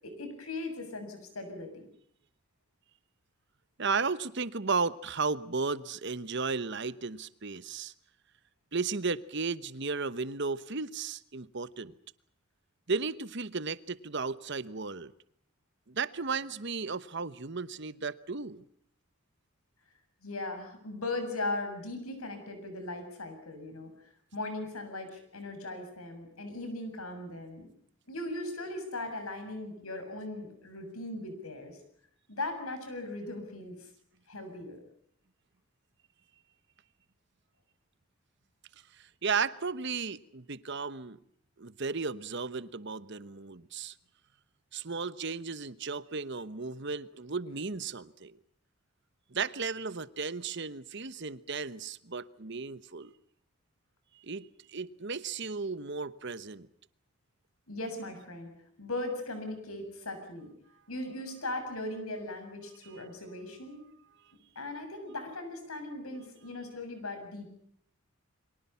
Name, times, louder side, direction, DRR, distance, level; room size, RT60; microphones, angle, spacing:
voice 1, 0.0-1.8 20.2-23.9 24.3-27.7 28.1-31.8 32.3-33.9 34.3-34.8 57.7-58.5 58.8-60.5 60.9-63.8 64.6-67.5, left 2 dB, 80° left, 7.5 m, -38 dB
voice 2, 3.8-7.9 8.7-11.9 12.9-15.1 15.9-18.6 39.0-41.2 41.6-43.9 44.7-48.4 49.3-53.1 54.2-56.7, right 4 dB, 55° right, 1.0 m, -34 dB
30.0 x 23.5 x 5.8 m
head